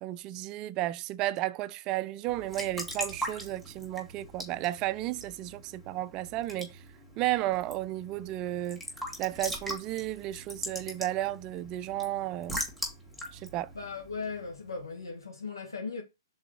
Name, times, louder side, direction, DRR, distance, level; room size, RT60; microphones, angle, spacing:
voice 1, 0.0-6.8 7.2-8.8 9.2-12.6 13.3-13.7, right 15 dB, 25° right, 0.4 m, -33 dB
Raindrop / Drip / Trickle dribble, 2.3-14.7, equal, 5° left, 1.9 m, -41 dB
voice 2, 13.7-16.0, left 4 dB, 80° left, 1.4 m, -38 dB
6.0 x 3.9 x 4.4 m
figure-of-eight pair, 125°, 2 cm